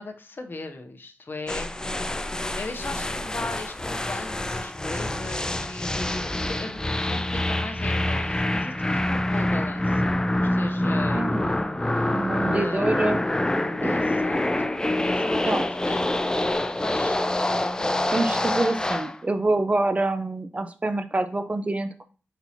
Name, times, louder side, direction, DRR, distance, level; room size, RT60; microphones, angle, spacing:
voice 1, 0.0-2.2 2.6-11.4 11.9-12.3 12.6-12.9 13.8-15.4 15.8-16.1 16.3-18.0, left 2 dB, 50° left, 5 dB, 0.7 m, -38 dB
sound 1, 1.5-19.2, left 1 dB, 15° left, 0.4 m, -26 dB
voice 2, 11.1-11.5 12.1-14.1 15.4-15.6 18.1-22.0, right 2 dB, 30° right, 8 dB, 0.6 m, -26 dB
4.4 x 4.2 x 2.7 m, 0.37 s
cardioid pair, 55°, 4 cm